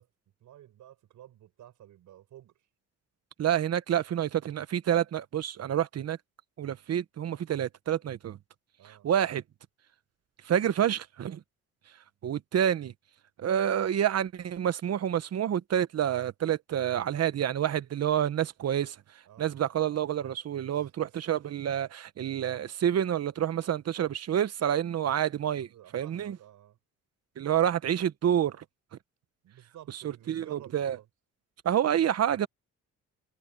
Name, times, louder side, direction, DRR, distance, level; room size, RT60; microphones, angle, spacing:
voice 1, 0.0-2.7 8.8-9.1 19.3-19.5 20.7-21.2 25.6-26.8 29.4-31.1, right 12 dB, 80° right, 7.4 m, -53 dB
voice 2, 3.4-6.2 6.6-8.4 8.8-9.4 10.4-11.4 12.2-12.9 13.4-19.0 19.4-25.7 25.9-26.4 27.4-28.6 30.3-31.0 31.6-32.5, right 10 dB, 55° right, 1.2 m, -28 dB
cardioid pair, 90°, 30 cm